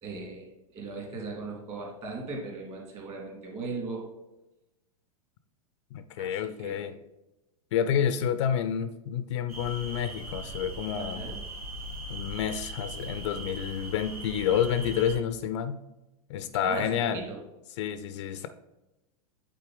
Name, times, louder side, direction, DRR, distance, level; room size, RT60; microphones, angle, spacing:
voice 1, 0.0-4.0 6.2-6.9 11.0-11.4 16.6-17.4, right 3 dB, 30° right, -1 dB, 2.4 m, -38 dB
voice 2, 5.9-7.0 7.7-11.3 12.1-15.8 16.3-17.2 17.8-18.5, left 8 dB, 50° left, 11 dB, 0.5 m, -29 dB
sound 1, 9.5-15.1, right 2 dB, 80° right, 1.7 m, -39 dB
8.3 x 4.1 x 3.8 m, 0.98 s
figure-of-eight pair, 95°, 19 cm